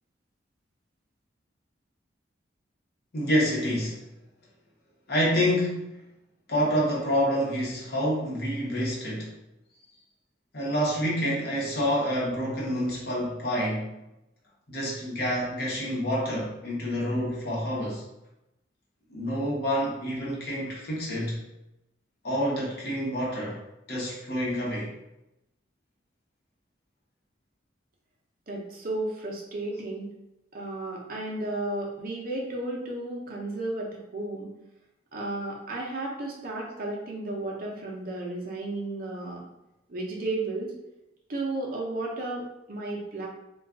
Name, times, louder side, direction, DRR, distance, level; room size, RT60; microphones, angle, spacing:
voice 1, 3.1-4.0 5.1-5.8 6.5-9.3 10.5-14.0 14.7-18.0 19.1-21.4 22.2-23.6 23.9-24.9, equal, 55° left, -4 dB, 0.9 m, -28 dB
voice 2, 28.5-30.1 30.5-34.5 35.1-39.4 39.9-40.7 41.3-43.3, right 2 dB, 50° right, -1 dB, 0.6 m, -33 dB
2.4 x 2.3 x 3.5 m, 0.90 s
head